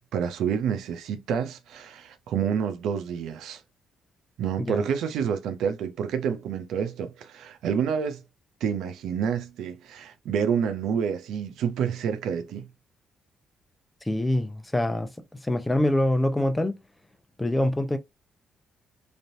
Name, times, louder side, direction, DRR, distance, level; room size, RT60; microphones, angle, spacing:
voice 1, 0.1-3.6 4.4-8.2 8.6-12.7, right 7 dB, 80° right, 0.5 m, -28 dB
voice 2, 14.1-15.1 15.4-16.8 17.4-18.0, left 1 dB, 10° left, 0.6 m, -25 dB
3.3 x 2.6 x 2.6 m
cardioid pair, 90°, 0 cm